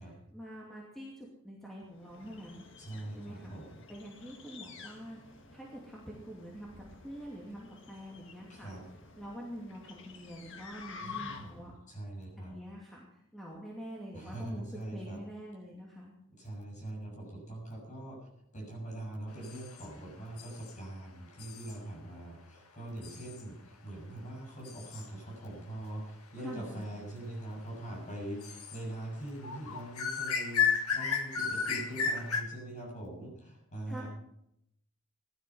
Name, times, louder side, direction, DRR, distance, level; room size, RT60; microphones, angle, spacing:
voice 1, 0.3-2.6 3.2-3.5 3.9-8.7 9.2-11.7 12.4-16.1 26.4-26.8 33.9-34.0, equal, ahead, -4 dB, 2.5 m, -46 dB
sound 1, 1.9-11.8, left 5 dB, 55° left, 1.7 m, -50 dB
voice 2, 2.8-3.8 8.5-8.8 11.0-12.5 14.1-15.2 16.4-34.1, right 1 dB, 35° left, 0 dB, 6.7 m, -43 dB
sound 2, 19.4-19.9 20.4-20.7 21.4-21.8 23.0-23.4 24.6-25.1 28.4-28.8 29.1-29.2 29.4-32.4, left 6 dB, 85° left, 1.8 m, -33 dB
16.5 x 12.0 x 5.7 m, 0.76 s
head